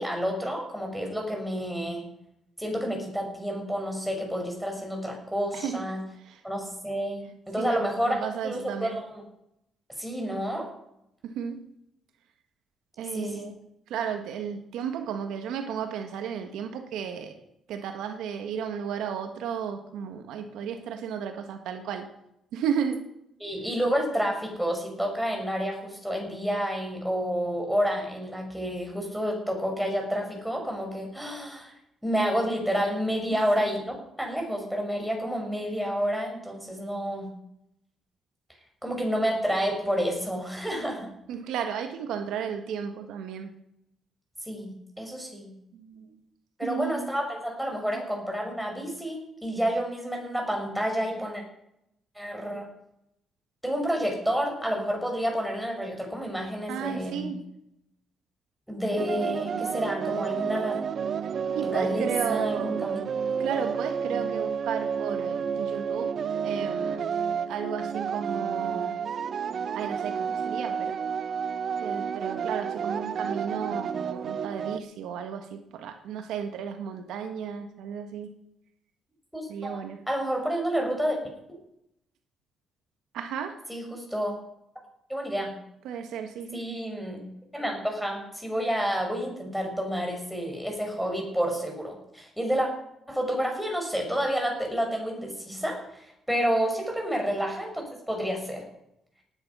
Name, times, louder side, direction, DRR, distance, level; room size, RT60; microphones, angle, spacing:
voice 1, 0.0-2.0 2.6-6.0 6.4-9.2 10.0-10.7 13.1-13.4 23.4-31.7 32.0-37.3 38.8-41.1 44.5-44.7 45.0-45.5 46.6-51.4 52.2-52.7 53.6-57.3 58.7-60.8 61.6-63.0 79.3-81.2 81.5-81.6 83.7-84.4 85.1-85.5 86.5-87.2 87.5-92.7 93.1-98.6, equal, ahead, 1 dB, 6.1 m, -29 dB
voice 2, 7.5-9.0 11.2-11.6 13.0-13.5 13.9-17.3 17.7-22.1 22.5-23.0 33.5-33.6 41.3-43.5 45.7-46.2 46.6-47.1 56.7-57.4 61.5-62.7 63.4-66.1 66.4-67.0 67.5-69.0 69.7-71.0 71.8-78.3 79.5-80.0 83.1-83.6 85.8-86.6, right 7 dB, 85° right, 6 dB, 1.6 m, -33 dB
sound 1, 59.0-74.8, right 7 dB, 55° right, 0.8 m, -30 dB
18.5 x 10.0 x 5.6 m, 0.80 s
cardioid pair, 90°, 0 cm